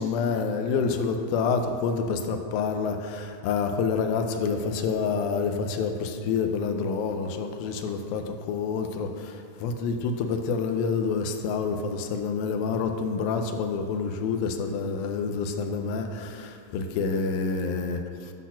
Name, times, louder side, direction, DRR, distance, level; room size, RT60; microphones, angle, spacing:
voice 1, 0.0-18.3, left 5 dB, 85° left, 6 dB, 2.4 m, -28 dB
12.0 x 4.2 x 5.8 m, 2.4 s
omnidirectional pair, 4.2 m